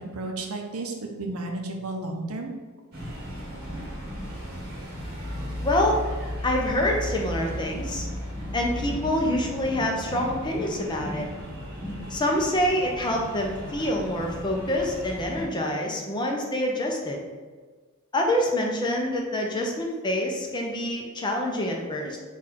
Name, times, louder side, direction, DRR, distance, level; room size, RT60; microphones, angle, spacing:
voice 1, 0.0-2.5 3.0-3.1, right 2 dB, 85° right, 2 dB, 0.7 m, -33 dB
sound 1, 2.9-15.5, equal, 45° right, 1.0 m, -35 dB
voice 2, 5.6-6.0 6.4-8.1 8.5-11.2 12.1-17.2 18.1-22.2, left 1 dB, 20° left, 0 dB, 0.6 m, -26 dB
4.2 x 2.5 x 4.1 m, 1.4 s
head